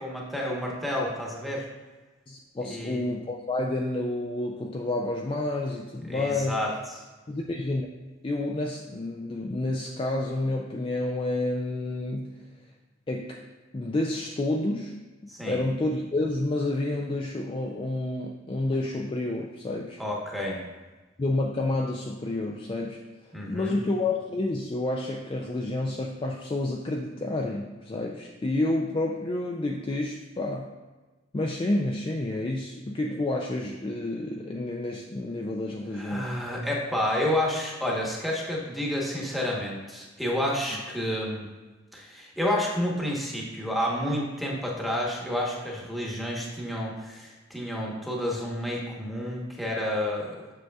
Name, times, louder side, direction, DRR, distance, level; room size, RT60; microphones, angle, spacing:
voice 1, 0.0-1.7 2.6-3.1 6.1-7.0 15.3-15.6 20.0-20.6 23.3-23.8 35.9-41.5 41.9-50.4, left 1 dB, ahead, -3 dB, 1.0 m, -30 dB
voice 2, 2.3-6.6 7.3-7.8 8.2-12.4 13.1-13.4 13.7-20.0 21.2-23.0 23.5-30.7 31.3-36.3 40.7-40.8, left 2 dB, 25° left, 0 dB, 0.3 m, -29 dB
7.8 x 6.1 x 2.3 m, 1.2 s
head